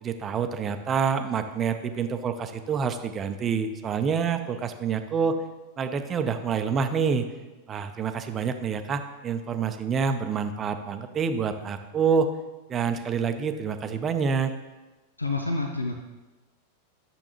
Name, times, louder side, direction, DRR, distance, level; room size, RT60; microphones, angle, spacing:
voice 1, 0.0-5.4 5.8-7.3 7.7-12.3 12.7-14.5, right 6 dB, 25° right, 8 dB, 0.7 m, -27 dB
voice 2, 15.2-15.9, left 3 dB, 85° left, 3 dB, 0.7 m, -28 dB
12.0 x 7.0 x 3.1 m, 1.2 s
figure-of-eight pair, 90°, 0 cm